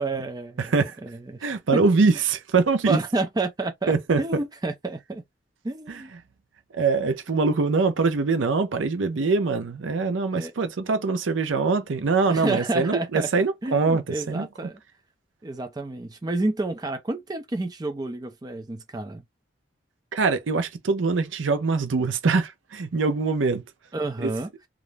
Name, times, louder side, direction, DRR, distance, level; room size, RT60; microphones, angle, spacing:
voice 1, 0.0-0.7 1.0-1.8 2.9-5.2 5.6-6.1 10.3-10.5 12.2-13.3 13.6-14.8 15.4-19.2 23.9-24.5, right 2 dB, 20° right, 0.4 m, -29 dB
voice 2, 0.6-1.0 1.4-3.0 3.9-4.2 5.9-6.0 6.7-14.5 20.1-23.6 24.2-24.3, right 4 dB, 80° right, 0.6 m, -23 dB
2.4 x 2.0 x 3.1 m
head